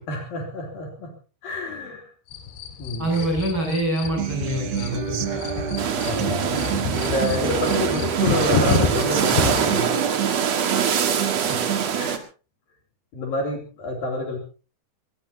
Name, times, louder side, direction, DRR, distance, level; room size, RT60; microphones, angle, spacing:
voice 1, 0.1-1.1 1.4-2.1 2.8-3.1 6.1-10.0 10.9-11.0 11.5-11.6 11.9-12.2 13.1-14.4, left 1 dB, 55° left, 2 dB, 4.5 m, -28 dB
sound 1, 2.3-9.8, left 5 dB, 70° left, 4.0 m, -29 dB
voice 2, 3.0-5.7, right 1 dB, 25° right, 1 dB, 8.4 m, -26 dB
Human voice / Acoustic guitar, 4.2-12.2, right 9 dB, 80° right, 1.5 m, -30 dB
sound 2, 5.8-12.2, right 7 dB, 50° right, 2.2 m, -24 dB
22.5 x 19.0 x 2.8 m, 0.34 s
omnidirectional pair, 5.2 m